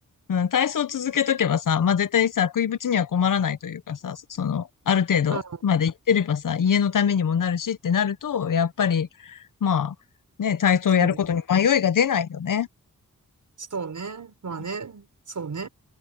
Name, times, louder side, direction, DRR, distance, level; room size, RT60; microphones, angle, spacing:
voice 1, 0.3-9.9 10.4-12.7, left 7 dB, 75° left, 0.9 m, -23 dB
voice 2, 13.6-15.7, right 5 dB, 65° right, 5.2 m, -34 dB
wide cardioid pair, 145°, 33 cm